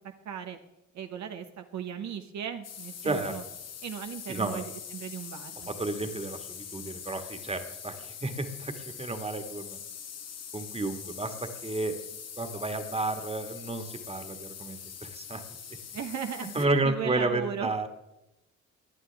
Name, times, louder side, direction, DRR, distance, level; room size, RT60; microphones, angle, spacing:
voice 1, 0.2-0.6 0.9-3.4 3.8-5.7 15.9-17.7, right 8 dB, 65° right, 5 dB, 1.1 m, -37 dB
sound 1, 2.6-16.7, left 8 dB, 55° left, 1.4 m, -43 dB
voice 2, 3.0-3.3 4.3-4.6 5.7-9.8 10.5-11.3 11.6-11.9 12.4-15.4 16.5-17.9, right 2 dB, 20° right, 7 dB, 1.8 m, -31 dB
19.5 x 11.0 x 3.5 m, 0.90 s
cardioid pair, 90°, 30 cm